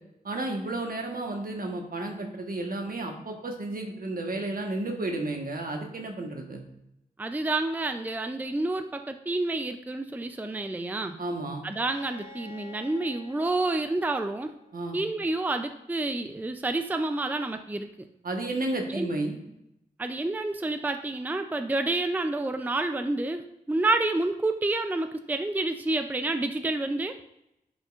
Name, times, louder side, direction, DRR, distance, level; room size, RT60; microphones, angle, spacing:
voice 1, 0.2-6.6 11.2-11.6 14.7-15.0 18.2-19.4, right 2 dB, 65° right, 2 dB, 1.3 m, -32 dB
voice 2, 7.2-11.2 11.6-14.5 14.9-18.1 18.9-19.1 20.0-27.2, right 2 dB, 10° right, 7 dB, 0.4 m, -29 dB
Bowed string instrument, 11.7-15.4, left 2 dB, 60° left, 2.4 m, -50 dB
10.5 x 5.1 x 2.5 m, 0.84 s
wide cardioid pair, 75°, 16 cm